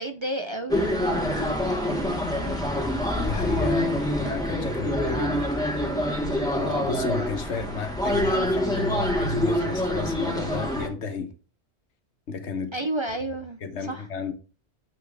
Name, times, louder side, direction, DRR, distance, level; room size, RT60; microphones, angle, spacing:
voice 1, 0.0-2.7 12.7-14.1, right 1 dB, 35° right, 0.5 m, -33 dB
sound 1, 0.7-10.9, equal, 5° left, 1.6 m, -26 dB
voice 2, 3.2-5.5 6.6-11.3 12.3-12.7 13.6-14.3, left 4 dB, 80° left, 1.3 m, -31 dB
7.5 x 5.8 x 3.4 m
omnidirectional pair, 1.2 m